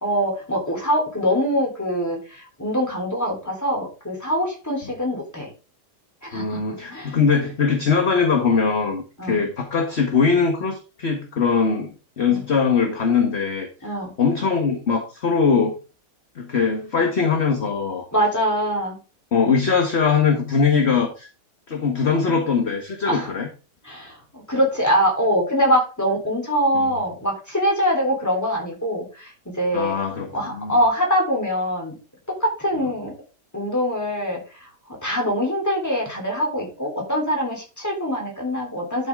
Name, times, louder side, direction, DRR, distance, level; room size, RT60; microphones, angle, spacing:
voice 1, 0.0-5.5 6.2-6.6 6.9-7.2 9.2-9.4 12.3-12.4 13.8-14.1 18.1-19.0 23.1-23.3 23.8-30.0 30.3-32.0 32.4-33.1 33.5-34.7 35.0-39.1, equal, 10° left, -1 dB, 3.7 m, -23 dB
voice 2, 6.3-15.8 16.3-18.1 19.3-21.3 21.7-23.5 26.7-26.9 29.7-30.7, left 5 dB, 40° left, 3 dB, 1.5 m, -21 dB
11.5 x 7.5 x 3.7 m, 0.33 s
omnidirectional pair, 1.9 m